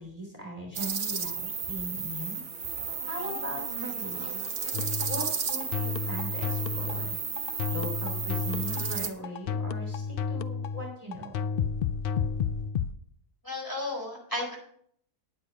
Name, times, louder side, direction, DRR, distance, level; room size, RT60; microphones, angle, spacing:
voice 1, 0.0-2.4 3.0-4.4 5.0-7.2 7.7-11.5, equal, 25° right, -1 dB, 2.9 m, -39 dB
sound 1, 0.7-9.1, right 6 dB, 50° right, 1.3 m, -33 dB
sound 2, 4.7-12.9, left 6 dB, 75° left, 0.5 m, -31 dB
voice 2, 13.4-14.6, left 1 dB, 15° left, -2 dB, 4.1 m, -33 dB
10.0 x 8.9 x 5.0 m, 0.62 s
omnidirectional pair, 1.5 m